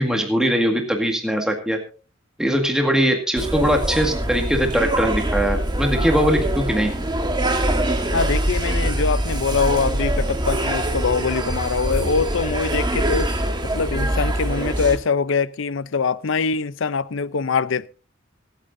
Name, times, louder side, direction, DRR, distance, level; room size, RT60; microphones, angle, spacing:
voice 1, 0.0-1.8 2.4-6.9, equal, 5° right, 1.9 m, -21 dB
sound 1, 3.4-15.0, right 1 dB, 20° right, 1.5 m, -23 dB
voice 2, 8.1-13.3 13.6-17.9, left 5 dB, 65° left, 0.6 m, -23 dB
24.5 x 8.9 x 2.6 m
head